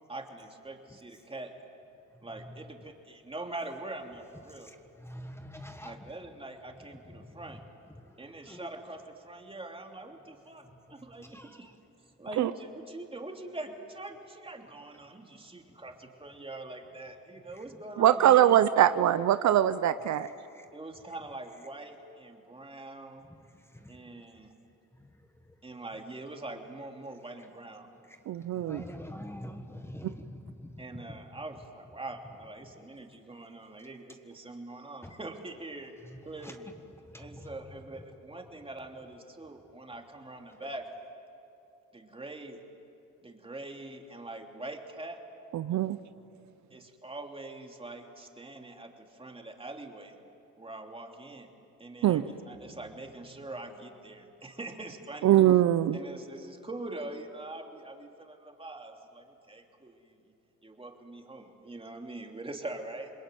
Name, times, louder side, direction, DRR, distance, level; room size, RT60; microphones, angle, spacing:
voice 1, 0.1-1.6 2.2-4.7 5.8-7.6 8.2-11.7 12.2-18.7 20.7-23.3 23.9-24.5 25.6-27.9 30.8-36.0 36.2-36.7 37.2-40.9 41.9-42.6 43.2-45.2 46.7-50.2 50.6-51.5 51.8-55.3 55.9-60.2 60.6-63.1, right 2 dB, 20° right, 3 dB, 3.1 m, -43 dB
voice 2, 4.6-6.1 7.2-7.4 8.0-8.2 8.5-8.7 11.2-11.7 20.5-20.6 23.7-24.0 25.0-25.1 28.1-28.2 28.5-31.1 32.7-32.9 35.0-35.1 36.4-36.6 37.1-37.6, left 1 dB, 10° left, 6 dB, 1.5 m, -45 dB
voice 3, 18.0-20.3 28.3-28.8 45.5-46.0 52.0-52.2 55.2-56.0, right 12 dB, 65° right, 13 dB, 0.7 m, -22 dB
28.0 x 21.5 x 9.3 m, 2.8 s
cardioid pair, 90°, 30 cm